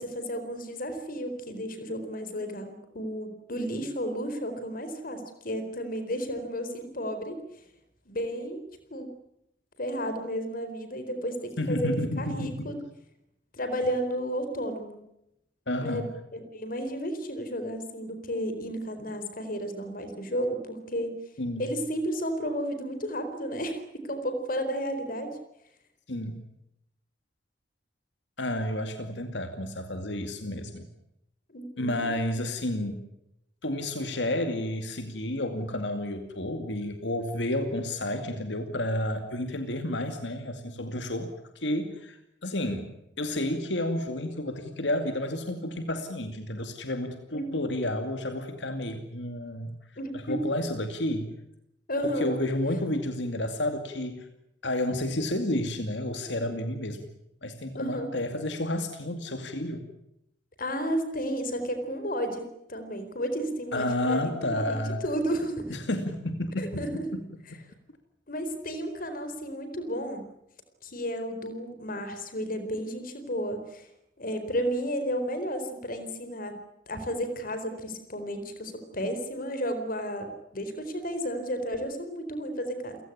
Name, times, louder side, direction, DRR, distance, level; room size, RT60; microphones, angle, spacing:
voice 1, 0.0-7.4 8.1-8.6 8.9-9.1 9.8-12.7 13.5-15.0 15.8-21.1 21.6-25.3 31.5-32.1 47.3-47.8 50.0-50.4 51.9-52.3 57.7-58.1 60.6-62.4 62.7-64.7 65.0-65.8 66.6-67.1 68.3-70.3 70.8-73.9 74.2-76.6 76.9-83.0, equal, 50° left, 9 dB, 4.4 m, -32 dB
voice 2, 11.6-12.7 15.7-16.1 21.4-21.7 26.1-26.4 28.4-30.9 31.8-33.0 33.6-42.9 43.2-49.7 50.1-51.4 52.0-54.3 54.6-57.1 57.4-59.8 63.7-65.0 65.7-66.8, left 1 dB, 80° left, 7 dB, 2.4 m, -31 dB
29.0 x 17.0 x 10.0 m, 0.83 s
head